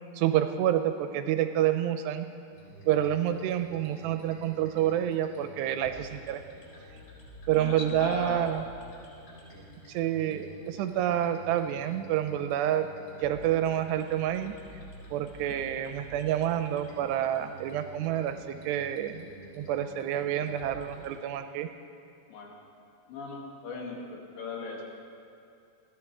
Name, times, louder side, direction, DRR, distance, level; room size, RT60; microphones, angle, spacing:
voice 1, 0.1-2.3 2.9-6.4 7.5-8.6 9.9-12.9 13.2-14.5 15.1-19.3 19.6-21.7, right 11 dB, 80° right, 8 dB, 2.7 m, -28 dB
sound 1, 2.5-21.1, right 1 dB, 25° left, 5.2 m, -50 dB
voice 2, 7.5-8.5 22.3-22.6 23.1-24.8, left 4 dB, 75° left, -1 dB, 4.3 m, -38 dB
20.0 x 15.0 x 4.8 m, 2.5 s
omnidirectional pair, 5.2 m